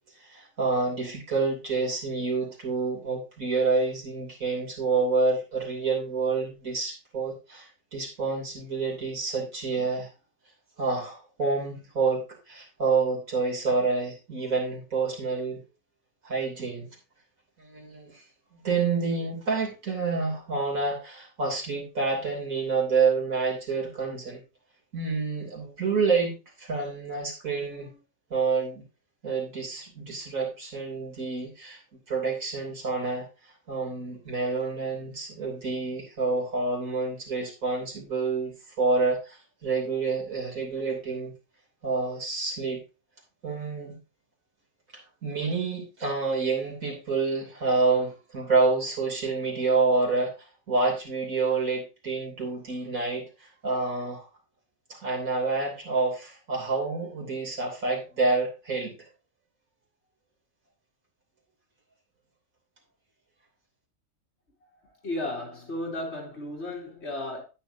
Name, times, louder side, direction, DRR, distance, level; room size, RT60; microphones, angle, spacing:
voice 1, 0.2-10.1 10.8-15.6 16.2-16.9 17.6-18.2 18.5-24.4 24.9-28.0 28.3-28.9 29.2-31.8 32.1-33.3 33.7-41.3 41.8-42.8 43.4-44.0 45.2-54.2 54.9-59.0, right 4 dB, 80° right, 3.5 m, -28 dB
voice 2, 64.8-67.4, left 1 dB, 50° left, 3.1 m, -34 dB
9.9 x 8.9 x 2.7 m
omnidirectional pair, 1.4 m